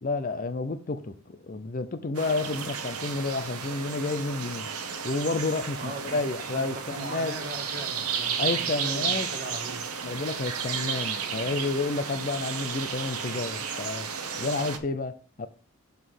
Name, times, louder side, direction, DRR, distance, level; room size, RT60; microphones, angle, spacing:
voice 1, 0.0-4.7 5.0-7.3 8.4-9.3 10.0-14.1 14.4-15.5, left 3 dB, 40° left, 0.5 m, -30 dB
sound 1, 2.1-14.8, right 6 dB, 85° right, 1.0 m, -33 dB
voice 2, 5.8-6.2 6.5-9.8, right 2 dB, 40° right, 1.7 m, -39 dB
7.2 x 3.9 x 6.3 m
head